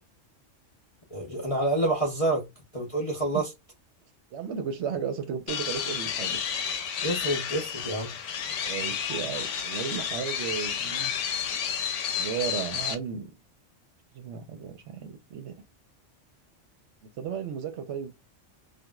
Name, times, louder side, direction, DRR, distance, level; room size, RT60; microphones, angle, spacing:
voice 1, 1.1-2.4 2.7-3.5 7.0-8.1, right 2 dB, 35° left, 0.6 m, -27 dB
voice 2, 4.3-6.4 8.6-11.1 12.1-13.3 14.1-15.6 17.2-18.1, right 7 dB, 70° right, 0.9 m, -34 dB
sound 1, 5.5-12.9, left 8 dB, 90° left, 0.9 m, -31 dB
2.9 x 2.4 x 2.2 m
omnidirectional pair, 1.2 m